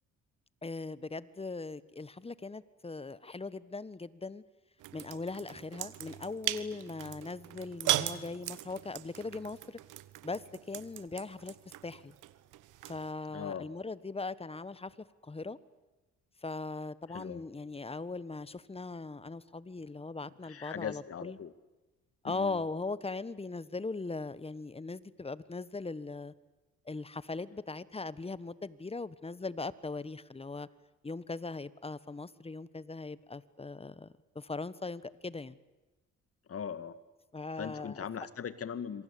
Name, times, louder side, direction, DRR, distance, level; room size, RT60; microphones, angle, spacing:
voice 1, 0.6-4.4 4.9-9.8 10.2-11.5 11.8-12.1 12.9-14.9 15.2-15.6 16.4-21.4 22.2-26.3 26.8-30.7 31.0-35.6 37.3-38.0, left 3 dB, 20° left, 17 dB, 1.3 m, -39 dB
sound 1, 4.8-13.1, right 15 dB, 90° right, 1.4 m, -39 dB
voice 2, 13.3-13.7 17.1-17.4 20.4-21.5 22.2-22.6 36.5-37.0 37.6-39.0, left 7 dB, 50° left, 13 dB, 2.0 m, -40 dB
27.0 x 24.0 x 8.6 m, 1.1 s
cardioid pair, 90°, 30 cm